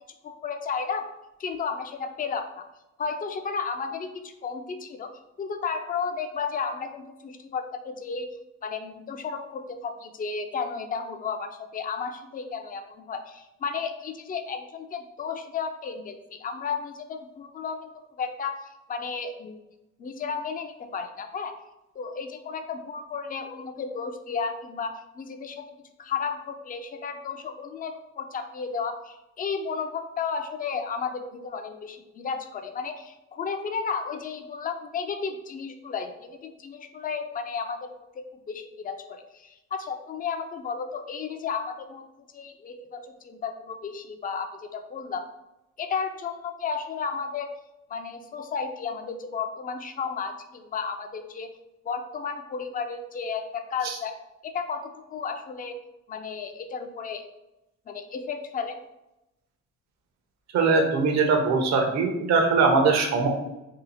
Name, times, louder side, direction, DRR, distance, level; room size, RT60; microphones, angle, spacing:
voice 1, 0.2-1.1 1.4-2.7 3.0-5.1 5.4-8.3 8.6-17.9 18.2-19.6 20.0-21.5 22.0-25.6 26.0-37.9 38.2-42.0 42.3-45.3 45.8-47.5 47.9-51.5 51.8-54.1 54.4-55.8 56.1-57.2 57.9-58.8, left 5 dB, 30° left, 7 dB, 0.4 m, -33 dB
voice 2, 60.5-63.3, right 4 dB, 65° right, 2 dB, 0.7 m, -21 dB
2.8 x 2.4 x 4.0 m, 0.92 s
cardioid pair, 90°, 30 cm